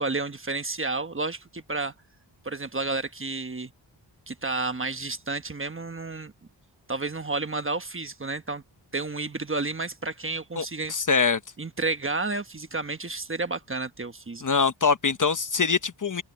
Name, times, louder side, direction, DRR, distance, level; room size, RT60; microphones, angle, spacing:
voice 1, 0.0-1.9 2.4-3.7 4.3-6.3 6.9-8.6 8.9-10.9 11.6-14.4, right 3 dB, 30° right, 1.2 m, -31 dB
voice 2, 10.6-11.4 14.4-16.2, left 5 dB, 45° left, 1.0 m, -24 dB
open air
wide cardioid pair, 115°, 44 cm